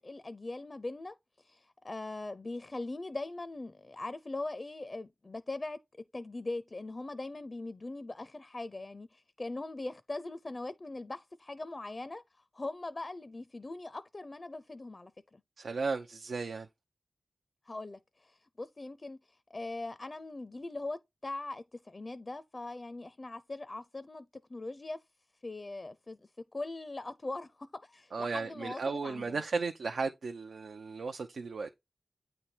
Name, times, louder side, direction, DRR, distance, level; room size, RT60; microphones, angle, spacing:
voice 1, 0.0-15.4 17.7-25.0 25.4-29.4, left 2 dB, 45° left, 0.5 m, -41 dB
voice 2, 15.6-16.7 28.1-31.7, right 4 dB, 85° right, 0.5 m, -35 dB
8.8 x 3.3 x 4.4 m
cardioid pair, 45°, 0 cm